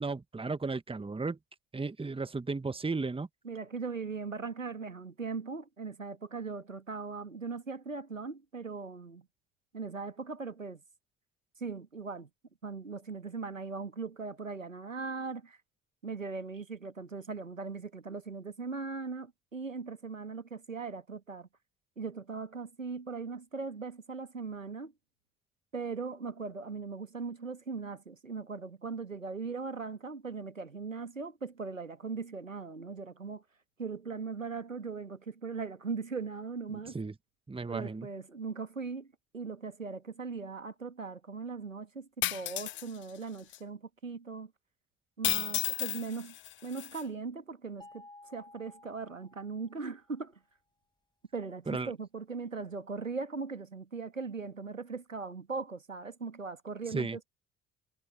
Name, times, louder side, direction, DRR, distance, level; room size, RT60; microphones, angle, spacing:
voice 1, 0.0-1.4 1.7-3.3 36.7-37.1 37.5-38.1 51.7-51.9 56.9-57.2, right 3 dB, 15° right, 1.6 m, -34 dB
voice 2, 3.4-9.3 9.7-10.8 11.6-12.3 12.6-15.6 16.0-21.5 22.0-24.9 25.7-33.4 33.8-37.0 37.7-39.1 39.3-44.5 45.2-46.4 46.6-50.4 51.3-57.3, right 4 dB, 90° right, 2.1 m, -39 dB
sound 1, 42.2-42.8 43.5-43.6 45.2-47.0, left 15 dB, 35° left, 0.4 m, -33 dB
sound 2, 47.8-50.0, left 2 dB, 10° left, 6.3 m, -55 dB
figure-of-eight pair, 50°, 38 cm